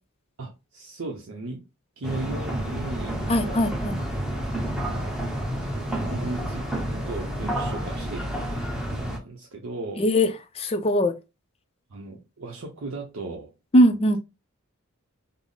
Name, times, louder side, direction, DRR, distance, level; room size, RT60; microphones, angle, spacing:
voice 1, 0.4-1.6 2.0-3.7 4.5-5.2 5.8-10.0 11.9-13.5, right 2 dB, 70° right, 0.7 m, -37 dB
sound 1, 2.0-9.2, right 1 dB, 5° right, 0.7 m, -30 dB
voice 2, 3.3-4.0 10.0-10.3 10.6-11.2 13.7-14.2, equal, 30° left, 0.4 m, -20 dB
3.5 x 2.0 x 3.8 m
head